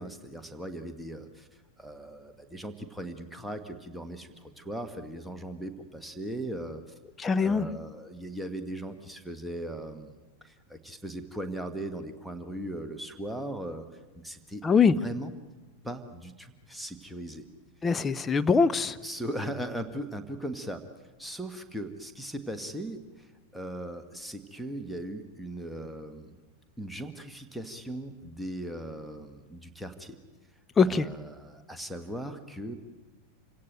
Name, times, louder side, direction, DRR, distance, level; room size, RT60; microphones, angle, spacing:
voice 1, 0.0-6.8 7.4-13.9 14.1-14.6 15.0-15.3 15.8-17.4 19.0-26.4 26.8-30.2 30.9-32.8, right 1 dB, ahead, 6 dB, 1.6 m, -38 dB
voice 2, 7.2-7.7 14.6-14.9 17.8-19.0 30.8-31.1, left 5 dB, 15° left, 12 dB, 0.7 m, -23 dB
27.5 x 17.0 x 9.3 m, 1.2 s
figure-of-eight pair, 90°, 0 cm